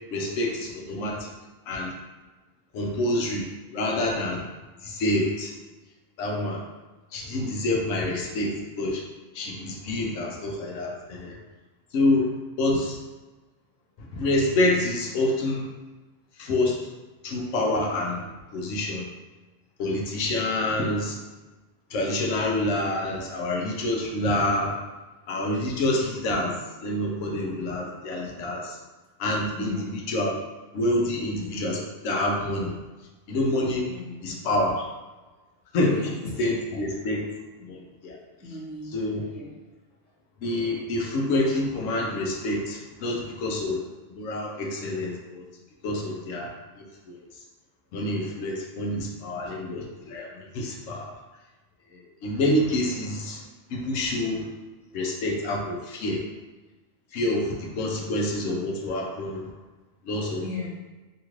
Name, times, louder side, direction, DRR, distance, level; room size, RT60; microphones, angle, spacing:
voice 1, 0.1-1.3 1.7-1.9 2.7-3.4 3.7-4.5 4.8-5.5 6.2-6.6 7.1-9.0 9.3-11.4 11.9-12.3 12.6-13.0 14.1-15.6 16.4-16.8 17.2-18.3 18.5-19.1 19.8-21.1 21.9-24.7 25.3-26.6 26.8-28.8 29.2-29.7 30.1-30.4 30.7-32.7 33.3-33.9 34.2-34.8 35.7-37.3 37.6-38.2 38.9-39.2 40.4-43.8 44.1-45.4 45.8-46.5 47.1-47.2 47.9-50.3 50.5-51.1 52.2-53.4 53.7-54.5 54.9-56.2 57.1-59.5 60.1-60.4, left 1 dB, 80° left, -1 dB, 0.9 m, -27 dB
voice 2, 29.5-29.9 33.9-34.3 35.9-36.2 38.3-39.0 39.3-39.5 60.4-60.7, left 3 dB, 15° right, -9 dB, 0.7 m, -37 dB
2.8 x 2.4 x 3.0 m, 1.2 s
omnidirectional pair, 1.3 m